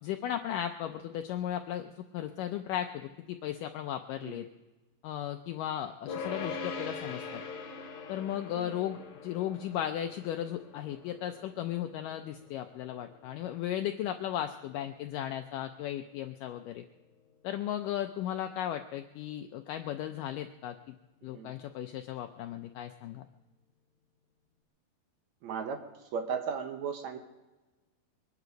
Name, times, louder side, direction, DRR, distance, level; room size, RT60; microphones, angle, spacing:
voice 1, 0.0-4.5 5.0-7.4 8.1-16.8 17.4-21.0 21.2-23.3, left 11 dB, 90° left, 6 dB, 1.8 m, -36 dB
sound 1, 6.1-17.4, left 5 dB, 70° left, 3.7 m, -44 dB
voice 2, 25.4-25.8 26.1-27.2, right 6 dB, 75° right, 5 dB, 1.7 m, -36 dB
22.5 x 11.0 x 5.2 m, 1.2 s
omnidirectional pair, 4.6 m